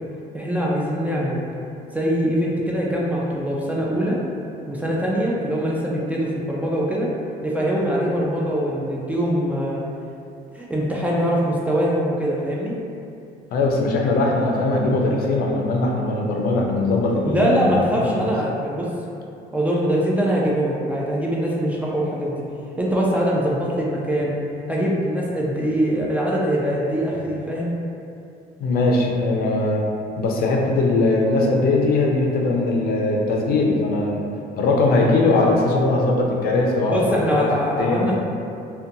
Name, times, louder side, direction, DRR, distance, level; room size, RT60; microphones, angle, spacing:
voice 1, 0.3-1.4 1.9-4.2 4.7-7.1 7.4-9.8 10.5-12.7 17.2-18.9 19.5-22.4 22.8-24.3 24.7-27.7 36.9-38.1, equal, 10° right, -5 dB, 0.3 m, -22 dB
voice 2, 13.5-17.7 18.0-18.3 28.6-29.8 30.2-34.2 34.6-37.4 37.8-38.1, left 2 dB, 65° left, -1 dB, 0.4 m, -20 dB
2.5 x 2.2 x 2.6 m, 2.6 s
cardioid pair, 110°, 17 cm